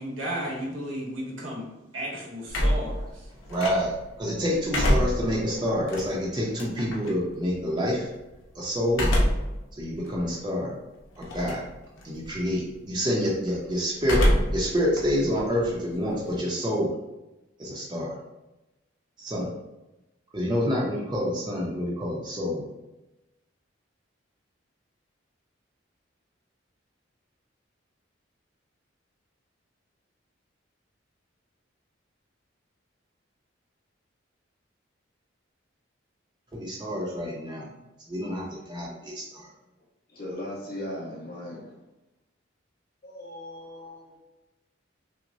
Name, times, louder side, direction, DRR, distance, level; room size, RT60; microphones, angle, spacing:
voice 1, 0.0-3.3, equal, 85° right, -3 dB, 1.3 m, -34 dB
sound 1, 2.5-4.1 4.5-7.1 8.9-9.6 10.1-10.2 11.2-11.7 12.0-12.4 14.0-14.7 15.0-16.4, equal, 85° left, 0.9 m, -25 dB
voice 2, 3.5-8.1 8.5-9.1 9.8-10.8 11.2-11.6 12.0-14.2 14.5-16.9 17.6-18.2 19.2-19.5 20.3-22.7 36.5-37.7 38.1-39.5, equal, 20° right, -5 dB, 0.6 m, -28 dB
voice 3, 40.1-41.8 43.0-44.2, left 1 dB, 45° left, -6 dB, 1.4 m, -38 dB
5.9 x 2.1 x 2.6 m, 0.99 s
head